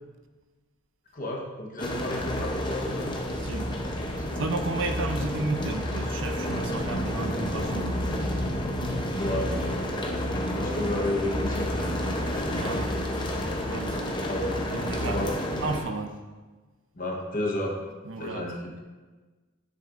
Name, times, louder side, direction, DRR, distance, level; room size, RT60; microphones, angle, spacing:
voice 1, 1.1-3.4 4.1-4.4 5.2-5.3 9.0-10.1 10.5-12.0 14.2-14.6 15.0-15.6 16.9-17.8 18.2-18.7, left 1 dB, 40° left, 0 dB, 1.2 m, -32 dB
sound 1, 1.8-15.8, equal, 20° left, 0.8 m, -30 dB
voice 2, 3.4-3.7 4.0-8.0 12.6-12.8 13.7-14.0 14.7-15.2 15.5-16.1 18.0-18.5, right 3 dB, 65° right, 6 dB, 0.7 m, -33 dB
10.0 x 6.5 x 2.6 m, 1.3 s
head